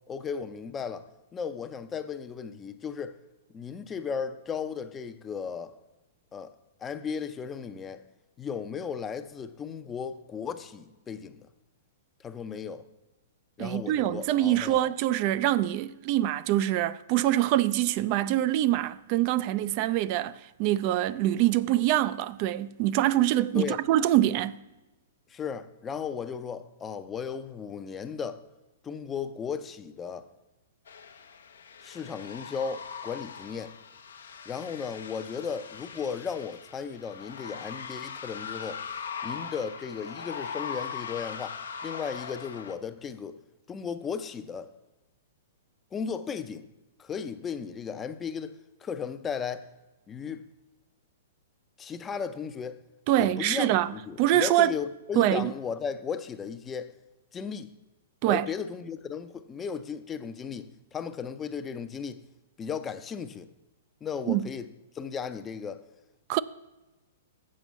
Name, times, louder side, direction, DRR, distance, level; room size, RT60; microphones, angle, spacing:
voice 1, 0.1-3.2 3.5-5.8 6.3-6.5 6.8-8.0 8.4-11.5 12.2-12.8 13.6-14.9 23.5-23.8 25.3-28.4 28.8-30.3 31.8-33.7 34.5-38.8 39.2-43.4 43.7-44.7 45.9-46.7 47.0-49.7 50.1-50.4 51.8-52.8 53.2-56.9 57.3-57.7 58.3-62.2 62.6-63.5 64.0-64.7 64.9-65.8, left 6 dB, 20° left, 0.5 m, -35 dB
voice 2, 13.6-24.6 53.1-53.9 54.2-54.7 55.2-55.5 58.2-58.5 64.3-64.5 66.3-66.4, right 13 dB, 40° right, 0.4 m, -25 dB
sound 1, 30.9-42.7, left 6 dB, 70° left, 0.7 m, -40 dB
7.6 x 5.1 x 7.0 m
figure-of-eight pair, 110°, 0 cm